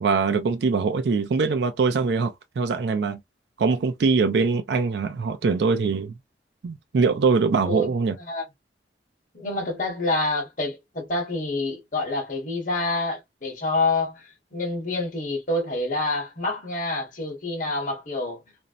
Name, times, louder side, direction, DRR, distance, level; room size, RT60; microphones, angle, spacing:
voice 1, 0.0-3.2 3.6-6.1 6.6-8.2, right 4 dB, 70° right, 0.4 m, -23 dB
voice 2, 7.6-8.4 9.3-18.4, left 2 dB, 50° left, 1.0 m, -27 dB
2.6 x 2.0 x 2.4 m
head